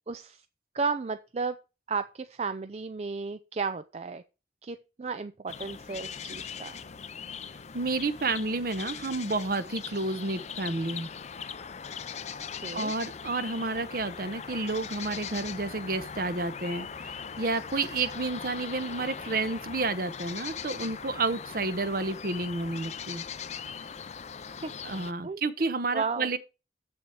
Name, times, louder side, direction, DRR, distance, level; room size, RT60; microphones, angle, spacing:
voice 1, 0.1-0.4 0.7-1.6 1.9-4.2 4.6-6.8 12.6-12.9 24.6-24.7 25.2-25.4 25.9-26.3, right 4 dB, 40° right, 0.4 m, -33 dB
sound 1, 5.5-25.1, left 6 dB, 40° left, 0.5 m, -40 dB
voice 2, 7.7-11.1 12.7-23.2 24.8-26.4, right 3 dB, 55° right, 0.9 m, -30 dB
7.9 x 7.1 x 4.8 m
head